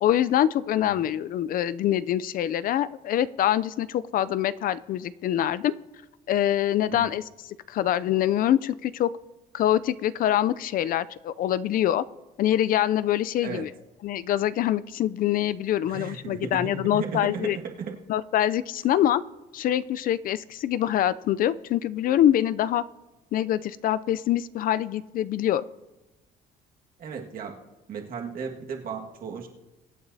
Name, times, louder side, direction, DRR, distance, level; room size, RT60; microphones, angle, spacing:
voice 1, 0.0-5.7 6.3-9.1 9.5-12.0 12.4-13.7 14.0-17.6 18.1-19.2 19.5-22.8 23.3-25.6, left 11 dB, 55° left, 16 dB, 0.4 m, -25 dB
voice 2, 15.9-18.0 27.0-27.6 27.9-29.5, right 6 dB, 60° right, 2 dB, 1.8 m, -35 dB
23.0 x 8.8 x 2.7 m, 1.0 s
cardioid pair, 110°, 17 cm